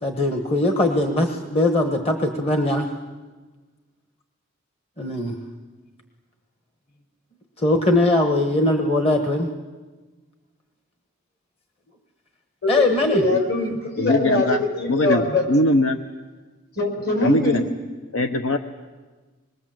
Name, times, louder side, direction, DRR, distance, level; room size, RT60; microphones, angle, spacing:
voice 1, 0.0-2.9 5.0-5.4 7.6-9.5 12.7-13.2, left 2 dB, 30° left, 5 dB, 1.3 m, -20 dB
voice 2, 13.1-15.5 16.8-17.6, left 2 dB, 55° left, 1 dB, 6.3 m, -22 dB
voice 3, 14.0-14.6 14.9-16.0 17.2-17.7 18.1-18.6, left 1 dB, 75° left, 6 dB, 1.0 m, -21 dB
26.0 x 21.5 x 7.7 m, 1.3 s
head